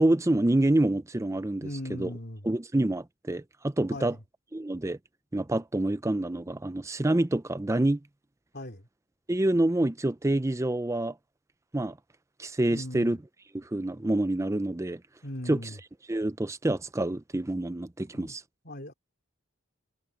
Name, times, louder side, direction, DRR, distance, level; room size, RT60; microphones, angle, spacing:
voice 1, 0.0-2.1 2.4-4.2 4.5-5.0 5.3-8.0 9.3-11.1 11.7-12.0 12.4-13.2 13.5-15.0 15.5-15.6 16.1-18.4, right 1 dB, 15° right, 0.5 m, -27 dB
voice 2, 1.6-2.5 3.9-4.2 8.5-8.8 12.7-13.2 15.2-15.8 18.1-18.3 18.6-18.9, left 1 dB, 45° left, 3.5 m, -39 dB
head